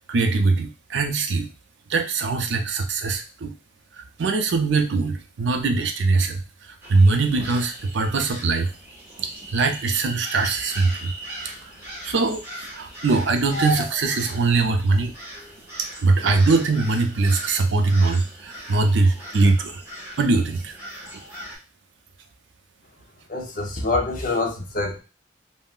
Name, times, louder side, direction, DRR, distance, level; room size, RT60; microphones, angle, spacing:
voice 1, 0.1-1.5 1.9-3.6 4.0-6.4 6.9-8.7 9.2-11.1 12.0-12.4 12.7-15.1 15.8-19.8 20.2-20.8, right 3 dB, 70° right, 6 dB, 0.4 m, -21 dB
sound 1, 6.8-21.6, equal, 15° right, 0.9 m, -38 dB
voice 2, 23.3-25.0, left 2 dB, 45° left, 1 dB, 0.6 m, -25 dB
3.6 x 2.0 x 2.4 m, 0.31 s
head